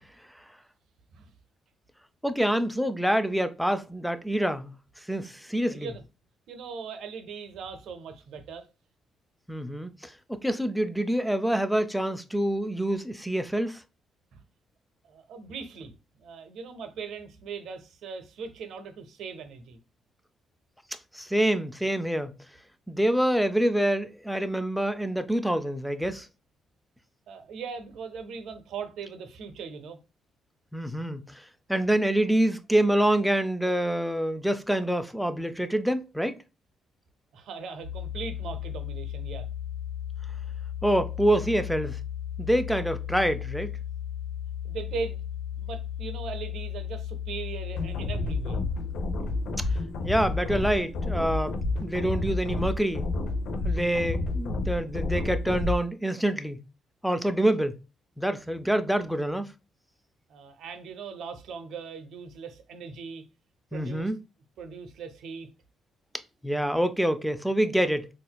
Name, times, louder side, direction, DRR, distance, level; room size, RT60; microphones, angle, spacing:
voice 1, 2.2-4.7 5.1-5.9 9.5-13.8 21.1-22.3 22.9-26.3 30.7-31.4 31.7-36.4 40.8-42.0 42.4-43.7 49.6-49.7 50.0-53.1 53.6-56.6 57.0-57.8 58.2-59.5 63.7-64.2 66.4-68.1, right 1 dB, ahead, 0.4 m, -26 dB
voice 2, 5.7-6.0 6.5-8.7 14.3-14.4 15.1-19.8 27.3-30.0 37.3-39.5 44.6-45.2 45.6-48.6 60.3-63.2 63.7-64.1 64.6-65.5, right 5 dB, 75° right, 0.7 m, -39 dB
sound 1, 37.8-48.9, left 10 dB, 50° left, 1.0 m, -35 dB
sound 2, 47.8-55.8, left 2 dB, 80° left, 0.5 m, -30 dB
4.0 x 2.5 x 2.2 m
cardioid pair, 90°, 0 cm